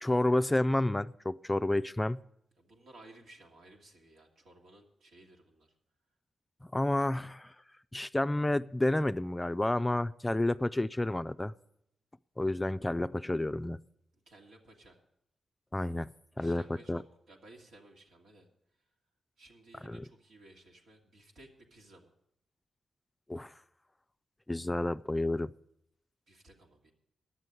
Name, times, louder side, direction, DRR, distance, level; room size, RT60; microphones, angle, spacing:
voice 1, 0.0-2.2 6.7-7.5 7.9-11.5 12.4-13.8 15.7-16.1 16.4-16.6 16.9-17.0 19.8-20.0 23.3-23.5 24.5-25.5, left 1 dB, 20° left, 0.4 m, -30 dB
voice 2, 2.6-5.8 14.3-15.0 16.4-18.5 19.4-22.1 26.3-26.9, right 2 dB, 80° right, 2.0 m, -57 dB
10.0 x 7.6 x 9.6 m
supercardioid pair, 45°, 0 cm